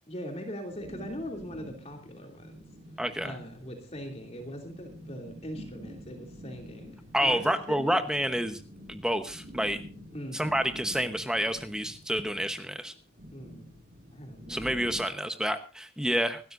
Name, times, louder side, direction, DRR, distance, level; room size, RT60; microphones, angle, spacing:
voice 1, 0.1-2.6 3.2-6.9 7.2-7.4 7.7-8.2 10.1-10.7 13.3-13.7 14.1-14.7, equal, 30° left, 2 dB, 2.7 m, -41 dB
sound 1, 0.7-15.0, equal, 40° right, 5.4 m, -48 dB
voice 2, 3.0-3.4 7.1-8.6 8.9-9.8 10.3-12.9 14.5-16.4, equal, 5° right, 8 dB, 0.9 m, -29 dB
25.5 x 13.0 x 2.6 m, 0.34 s
head